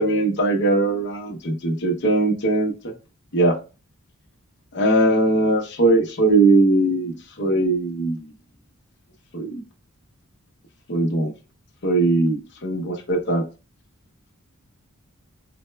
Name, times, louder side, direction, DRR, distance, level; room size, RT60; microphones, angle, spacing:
voice 1, 0.0-2.7 3.3-3.5 4.7-8.3 9.3-9.5 10.9-11.3 11.8-13.4, right 2 dB, 55° left, 0 dB, 0.9 m, -20 dB
4.4 x 2.2 x 3.2 m, 0.31 s
head